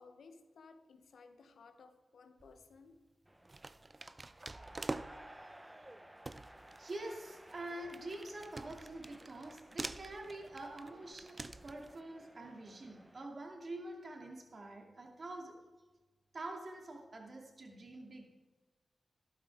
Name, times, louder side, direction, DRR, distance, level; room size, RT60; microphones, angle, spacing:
voice 1, 0.0-3.0, left 4 dB, 80° left, 8 dB, 0.9 m, -58 dB
sound 1, 2.4-2.7 3.4-5.4 5.8-5.9 6.3-12.0, right 2 dB, 40° right, 0.5 m, -46 dB
sound 2, 3.3-13.3, right 1 dB, 15° right, 0.9 m, -57 dB
voice 2, 6.8-15.6 16.3-18.2, right 2 dB, 55° right, 1 dB, 2.5 m, -46 dB
13.0 x 12.0 x 3.6 m, 1.3 s
supercardioid pair, 40°, 0 cm